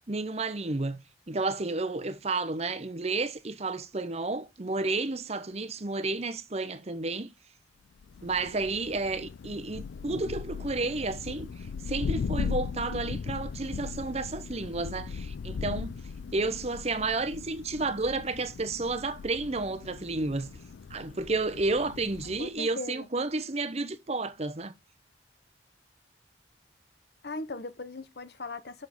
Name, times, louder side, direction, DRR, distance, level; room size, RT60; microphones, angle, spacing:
voice 1, 0.1-1.0 1.3-7.3 8.2-15.9 16.3-20.5 20.9-24.7, right 3 dB, 35° right, 0.8 m, -31 dB
Thunder, 8.0-22.6, left 5 dB, 85° left, 0.4 m, -38 dB
voice 2, 22.4-23.1 27.2-28.9, left 2 dB, 60° left, 0.9 m, -38 dB
7.2 x 6.5 x 5.3 m
head